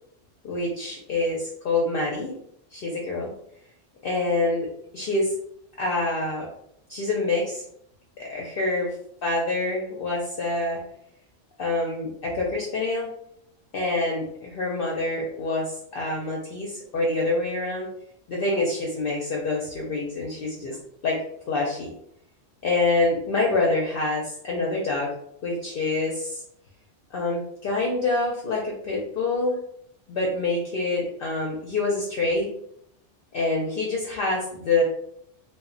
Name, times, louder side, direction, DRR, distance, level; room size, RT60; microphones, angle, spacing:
voice 1, 0.4-2.3 2.7-3.3 4.0-4.7 4.9-5.3 5.8-6.5 6.9-7.6 8.2-8.9 9.2-10.8 11.6-13.1 13.7-17.9 18.3-20.8 21.0-21.2 21.5-21.9 22.6-25.1 25.4-26.4 27.1-29.6 30.1-32.5 33.3-34.8, left 2 dB, 60° left, -2 dB, 0.6 m, -26 dB
2.1 x 2.1 x 3.6 m, 0.72 s
omnidirectional pair, 1.3 m